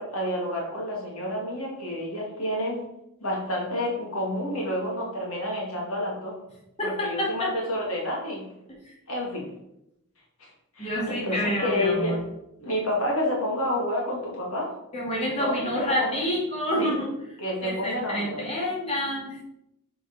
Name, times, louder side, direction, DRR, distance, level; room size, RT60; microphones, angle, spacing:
voice 1, 0.0-2.8 3.2-6.4 6.8-8.5 9.1-9.5 10.4-12.2 12.6-14.7 15.4-16.2 16.8-16.9 17.4-18.4, left 1 dB, 65° left, -2 dB, 2.3 m, -29 dB
voice 2, 6.8-7.5 10.8-12.2 14.9-17.1 17.6-19.4, equal, 30° left, -4 dB, 2.3 m, -28 dB
7.3 x 4.5 x 5.5 m, 0.83 s
head